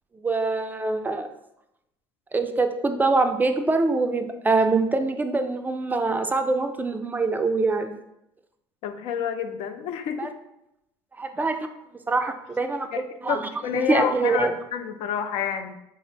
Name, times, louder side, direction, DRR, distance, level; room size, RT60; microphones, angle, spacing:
voice 1, 0.2-1.3 2.3-8.0 10.2-10.3 11.2-11.7 12.1-12.9 13.2-14.5, right 3 dB, 15° right, 7 dB, 0.3 m, -24 dB
voice 2, 8.8-10.3 12.9-15.8, left 8 dB, 65° left, 8 dB, 0.4 m, -29 dB
3.7 x 2.0 x 3.9 m, 0.84 s
supercardioid pair, 85°, 11 cm